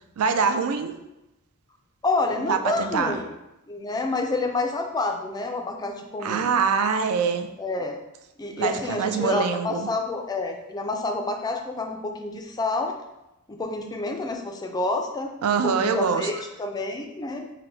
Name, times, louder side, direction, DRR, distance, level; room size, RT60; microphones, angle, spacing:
voice 1, 0.2-0.9 2.5-3.2 6.2-7.5 8.6-9.9 15.4-16.3, right 6 dB, 75° right, 7 dB, 0.4 m, -24 dB
voice 2, 2.0-3.4 3.7-6.5 7.6-8.0 8.4-12.9 13.5-15.3 15.6-17.5, left 2 dB, 20° left, 4 dB, 0.3 m, -28 dB
3.8 x 2.1 x 4.3 m, 0.93 s
head